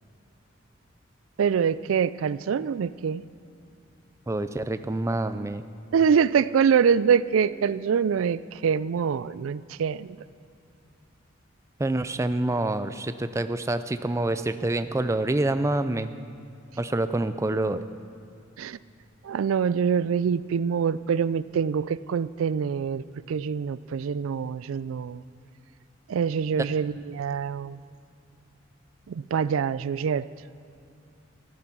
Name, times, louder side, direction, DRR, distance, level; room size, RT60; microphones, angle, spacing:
voice 1, 1.4-3.3 5.9-10.2 18.6-18.8 19.2-25.2 26.1-27.8 29.1-30.3, right 7 dB, 85° right, 17 dB, 0.4 m, -25 dB
voice 2, 4.3-5.6 11.8-16.1 16.8-17.8, right 2 dB, 15° right, 11 dB, 0.4 m, -27 dB
13.5 x 11.0 x 6.1 m, 2.6 s
head